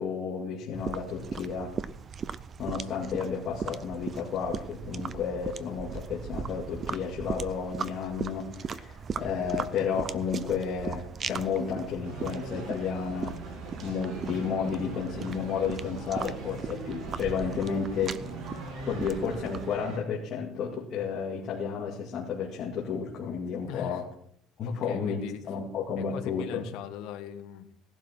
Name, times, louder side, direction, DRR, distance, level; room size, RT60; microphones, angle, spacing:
voice 1, 0.0-1.7 2.6-13.3 13.8-18.2 18.9-24.0 24.6-26.6, left 6 dB, 35° left, -3 dB, 2.3 m, -32 dB
sound 1, 0.7-19.7, right 6 dB, 25° right, 0.5 m, -38 dB
sound 2, 12.0-20.0, right 3 dB, 70° right, 5.5 m, -41 dB
voice 2, 23.7-24.0 24.6-25.4 26.0-27.7, left 9 dB, 65° left, 5 dB, 1.7 m, -39 dB
17.5 x 11.5 x 4.5 m, 0.66 s
cardioid pair, 170°, 0 cm